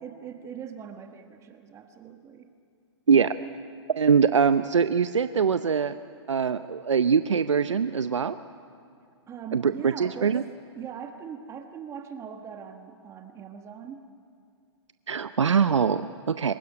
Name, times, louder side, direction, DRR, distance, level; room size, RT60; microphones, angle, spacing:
voice 1, 0.0-2.5 9.3-10.4 10.7-14.1, right 7 dB, 20° right, 6 dB, 1.3 m, -41 dB
voice 2, 4.0-6.0 6.3-8.4 9.5-10.4 15.1-16.5, right 6 dB, 90° right, 11 dB, 0.7 m, -23 dB
26.0 x 16.5 x 9.8 m, 2.4 s
hypercardioid pair, 130°, 15 cm